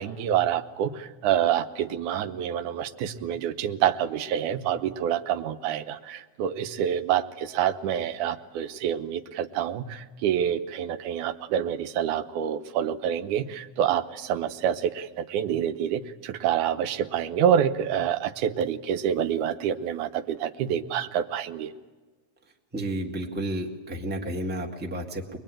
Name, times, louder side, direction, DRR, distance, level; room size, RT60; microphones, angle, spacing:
voice 1, 0.0-21.7, right 9 dB, 90° right, 9 dB, 2.4 m, -27 dB
voice 2, 22.7-25.4, right 1 dB, 5° right, 1 dB, 1.2 m, -31 dB
23.0 x 22.0 x 8.9 m, 1.3 s
omnidirectional pair, 3.4 m